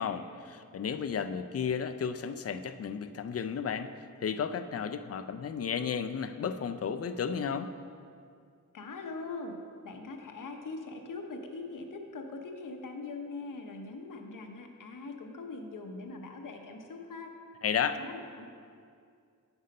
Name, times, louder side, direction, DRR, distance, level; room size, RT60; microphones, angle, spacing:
voice 1, 0.0-3.9 4.2-7.7 17.6-18.0, left 7 dB, 50° left, 10 dB, 0.4 m, -33 dB
voice 2, 8.7-17.3 17.8-18.4, left 3 dB, 70° left, 4 dB, 0.9 m, -42 dB
8.0 x 5.4 x 5.2 m, 2.3 s
wide cardioid pair, 110°, 33 cm